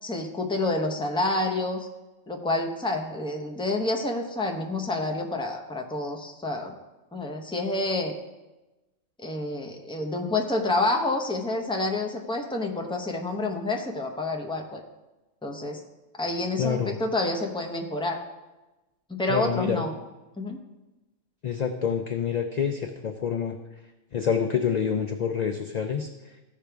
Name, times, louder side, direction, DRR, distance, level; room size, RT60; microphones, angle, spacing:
voice 1, 0.0-1.9 2.3-6.8 7.1-8.1 9.2-14.8 15.4-15.8 16.2-18.2 19.1-19.9 20.4-20.6, left 2 dB, 5° left, 2 dB, 0.6 m, -28 dB
voice 2, 16.6-17.0 19.3-19.8 21.4-23.6 24.1-26.1, left 7 dB, 60° left, 5 dB, 0.4 m, -27 dB
14.5 x 5.0 x 3.4 m, 1.1 s
omnidirectional pair, 1.3 m